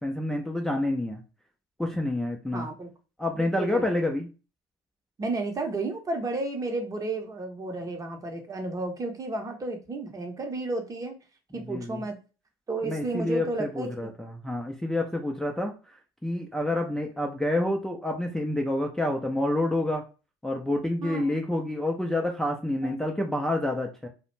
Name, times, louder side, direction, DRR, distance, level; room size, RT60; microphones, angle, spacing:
voice 1, 0.0-1.2 1.8-2.7 3.2-4.3 11.5-12.0 12.8-20.0 20.4-24.1, left 1 dB, 5° left, 0 dB, 0.5 m, -28 dB
voice 2, 2.5-2.9 3.3-4.1 5.2-11.2 11.5-12.2 12.7-14.1 21.0-21.4 22.8-22.9, right 2 dB, 30° right, 4 dB, 0.8 m, -32 dB
2.4 x 2.1 x 3.0 m, 0.33 s
hypercardioid pair, 65°, 12 cm